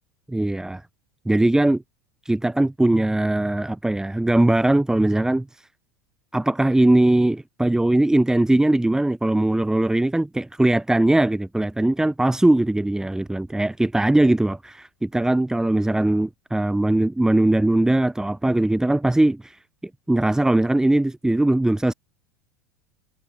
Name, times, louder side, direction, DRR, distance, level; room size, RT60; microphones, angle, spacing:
voice 1, 0.3-0.8 1.2-1.8 2.2-5.7 6.3-19.6 20.1-21.9, right 1 dB, 5° right, 5.0 m, -20 dB
figure-of-eight pair, 80°, 10 cm